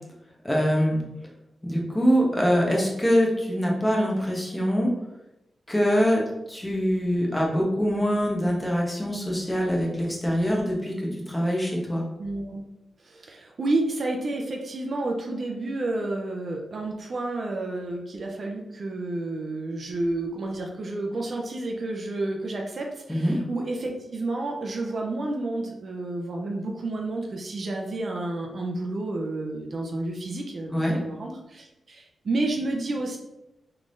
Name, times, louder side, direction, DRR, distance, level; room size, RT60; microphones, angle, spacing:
voice 1, 0.4-1.0 1.6-4.9 5.7-6.2 6.5-12.0 23.1-23.4 30.7-31.0, equal, 10° left, -2 dB, 0.9 m, -24 dB
voice 2, 12.2-12.6 13.0-33.2, right 2 dB, 55° right, 1 dB, 0.5 m, -30 dB
3.6 x 3.2 x 2.6 m, 0.92 s
wide cardioid pair, 105°, 0 cm